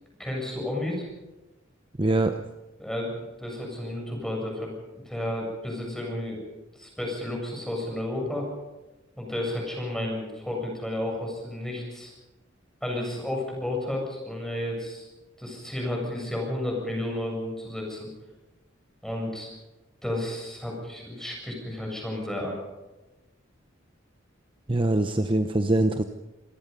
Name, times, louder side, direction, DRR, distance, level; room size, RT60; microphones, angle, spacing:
voice 1, 0.2-1.1 2.8-3.1 3.4-6.4 6.7-8.5 9.2-12.1 12.8-15.1 15.4-18.1 19.0-19.5 20.0-22.6, left 1 dB, 5° left, -1 dB, 7.6 m, -32 dB
voice 2, 2.0-2.3 24.7-26.0, right 2 dB, 25° right, 7 dB, 0.8 m, -23 dB
27.0 x 17.5 x 5.5 m, 1.1 s
head